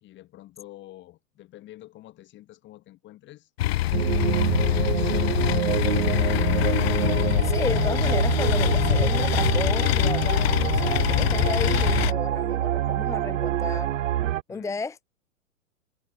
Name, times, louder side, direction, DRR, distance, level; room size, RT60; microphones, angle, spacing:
voice 1, 0.0-3.5 4.3-6.0 14.5-14.8, left 15 dB, 25° left, 2.7 m, -48 dB
sound 1, 3.6-12.1, left 15 dB, 50° left, 0.5 m, -24 dB
sound 2, 3.9-14.4, right 12 dB, 65° right, 1.1 m, -26 dB
voice 2, 7.4-14.0 14.5-15.0, left 3 dB, 5° left, 1.3 m, -33 dB
hypercardioid pair, 120°, 41 cm